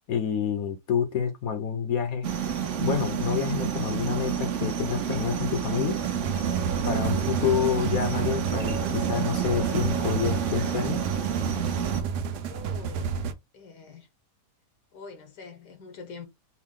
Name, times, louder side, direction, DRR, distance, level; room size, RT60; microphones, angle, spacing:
voice 1, 0.1-2.3 2.8-6.0 6.9-11.0, left 7 dB, 65° left, 1.2 m, -28 dB
sound 1, 2.2-12.0, right 8 dB, 55° right, 0.9 m, -29 dB
sound 2, 6.0-13.3, right 6 dB, 80° right, 1.2 m, -31 dB
voice 2, 12.4-13.1 13.5-14.1 14.9-16.3, left 5 dB, 80° left, 1.7 m, -44 dB
4.6 x 2.3 x 3.7 m
omnidirectional pair, 1.8 m